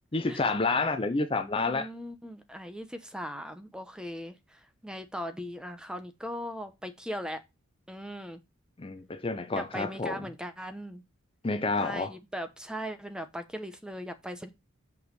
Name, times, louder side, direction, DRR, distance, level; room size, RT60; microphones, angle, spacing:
voice 1, 0.1-1.9 8.8-10.3 11.4-12.1, left 3 dB, 25° left, 0.6 m, -29 dB
voice 2, 1.6-7.4 7.9-8.4 9.6-11.0 11.8-14.5, equal, 5° right, 0.9 m, -39 dB
6.4 x 5.4 x 5.3 m
head